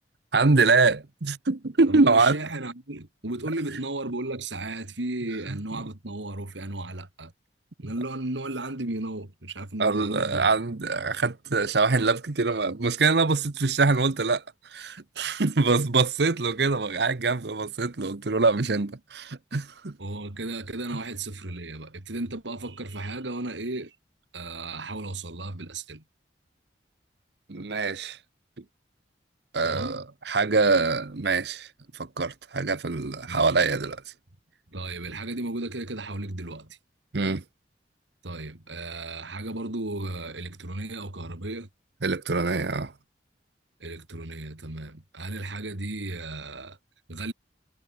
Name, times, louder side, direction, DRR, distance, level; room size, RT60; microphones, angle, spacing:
voice 1, 0.3-2.4 5.5-5.8 9.8-14.4 14.7-20.0 27.5-28.2 29.5-31.7 31.9-34.0 37.1-37.4 42.0-42.9, right 4 dB, 65° right, 0.9 m, -24 dB
voice 2, 1.9-7.3 7.8-10.5 20.0-24.0 24.3-26.0 29.6-30.0 33.3-33.5 34.7-36.8 38.2-41.7 43.8-46.8 47.1-47.3, right 2 dB, 80° right, 2.5 m, -34 dB
head